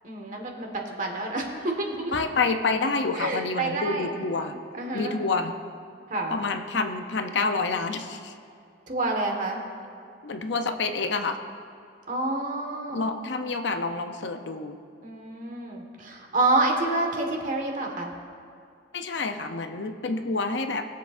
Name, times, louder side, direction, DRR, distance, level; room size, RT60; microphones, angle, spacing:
voice 1, 0.0-2.1 3.2-4.1 4.8-5.2 6.1-6.4 8.9-9.6 12.1-13.1 15.0-18.1, right 2 dB, 40° right, 1 dB, 1.5 m, -28 dB
voice 2, 2.1-4.6 4.9-5.5 6.3-8.3 10.2-11.4 12.9-14.8 18.9-20.9, left 3 dB, 65° left, 7 dB, 0.6 m, -28 dB
21.5 x 7.5 x 2.5 m, 2.4 s
head